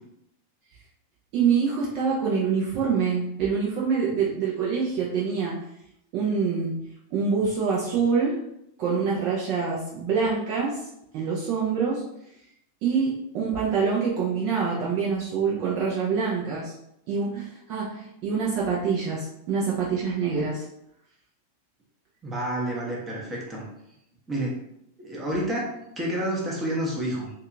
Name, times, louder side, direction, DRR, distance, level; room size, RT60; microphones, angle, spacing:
voice 1, 1.3-5.6 6.1-6.8 7.1-8.3 8.8-10.8 11.1-12.0 12.8-16.7 17.1-20.6, right 5 dB, 40° right, -5 dB, 0.5 m, -25 dB
voice 2, 22.2-23.7 24.3-24.6 25.0-27.3, right 1 dB, 15° right, -3 dB, 0.8 m, -29 dB
2.7 x 2.3 x 2.5 m, 0.79 s
figure-of-eight pair, 90°, 0 cm